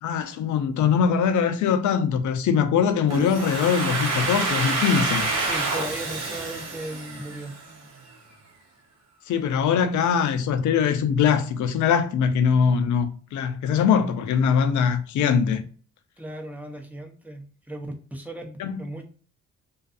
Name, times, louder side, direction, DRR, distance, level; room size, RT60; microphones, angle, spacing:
voice 1, 0.0-5.2 9.3-15.6 18.6-18.8, left 7 dB, 75° left, 0.5 m, -22 dB
Domestic sounds home sounds, 3.1-7.9, right 3 dB, 60° right, 0.8 m, -28 dB
voice 2, 5.4-7.6 16.2-19.0, right 1 dB, 5° right, 0.6 m, -36 dB
2.5 x 2.3 x 2.5 m
cardioid pair, 90°, 30 cm